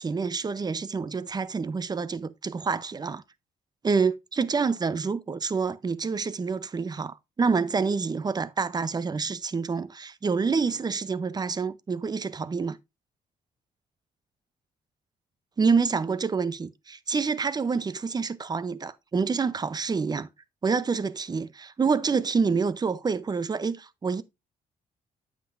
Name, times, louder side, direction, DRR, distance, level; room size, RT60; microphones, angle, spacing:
voice 1, 0.0-3.2 3.8-12.8 15.6-20.3 20.6-24.2, right 5 dB, 25° right, 0.6 m, -27 dB
9.1 x 7.5 x 2.5 m
cardioid pair, 100°, 15 cm